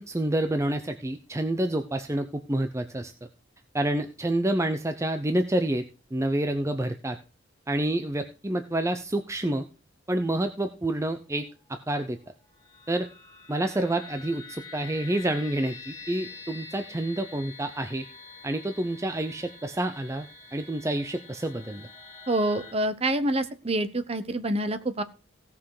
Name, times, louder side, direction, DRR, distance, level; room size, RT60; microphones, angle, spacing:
voice 1, 0.0-3.1 3.7-5.8 6.1-7.2 7.7-9.7 10.1-12.2 12.9-13.1 13.5-18.1 18.4-21.9, right 1 dB, 15° right, 8 dB, 0.6 m, -28 dB
sound 1, 12.2-22.7, left 4 dB, 15° left, 4.0 m, -46 dB
voice 2, 22.3-25.0, right 1 dB, 30° right, 11 dB, 0.9 m, -27 dB
16.5 x 5.8 x 4.8 m, 0.33 s
head